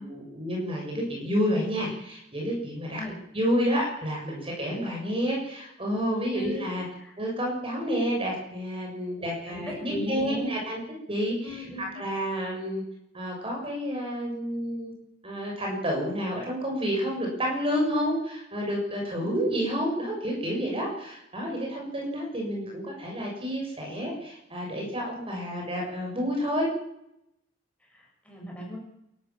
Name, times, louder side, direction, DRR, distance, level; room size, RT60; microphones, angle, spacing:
voice 1, 0.0-3.0 3.3-6.8 7.2-10.8 11.1-11.6 11.9-12.8 13.1-14.9 15.2-26.7, equal, 30° right, -1 dB, 6.7 m, -29 dB
voice 2, 6.3-6.7 7.0-7.1 9.2-10.6 11.4-12.0 19.2-19.6 27.9-28.8, left 1 dB, 5° left, -2 dB, 7.1 m, -38 dB
27.5 x 13.0 x 7.4 m, 0.80 s
head